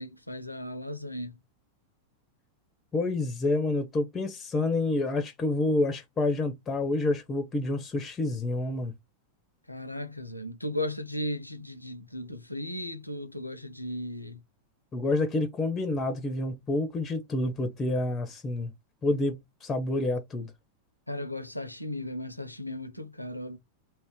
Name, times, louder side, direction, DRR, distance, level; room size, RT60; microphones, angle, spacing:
voice 1, 0.0-1.4 9.7-14.4 21.1-23.6, left 1 dB, 85° left, 0.4 m, -36 dB
voice 2, 2.9-8.9 14.9-18.7 19.0-20.5, left 2 dB, 20° left, 0.5 m, -28 dB
2.4 x 2.1 x 3.5 m
figure-of-eight pair, 90°, 0 cm